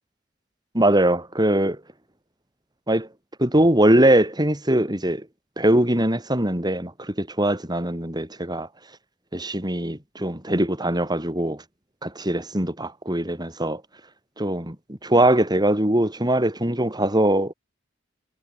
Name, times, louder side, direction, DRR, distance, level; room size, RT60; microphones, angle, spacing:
voice 1, 0.7-1.8 2.9-3.1 3.4-5.3 5.6-8.7 9.3-11.6 12.0-13.8 14.4-17.5, right 1 dB, 20° right, 6.3 m, -21 dB
head